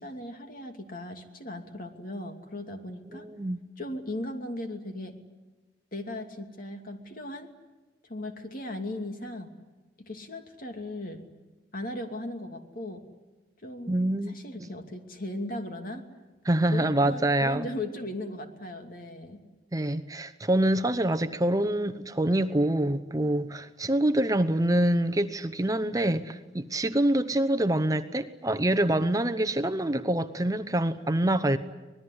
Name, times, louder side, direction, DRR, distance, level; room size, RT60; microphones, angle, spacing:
voice 1, 0.0-3.3 3.8-5.2 5.9-7.5 8.0-9.5 10.0-11.2 11.7-13.0 13.6-14.0 14.3-16.1 16.7-19.4, left 1 dB, 55° left, 2.7 m, -37 dB
voice 2, 3.1-3.6 13.9-14.3 14.6-14.7 16.4-17.7 19.7-31.6, right 1 dB, 20° right, 0.9 m, -26 dB
25.5 x 20.5 x 9.8 m
head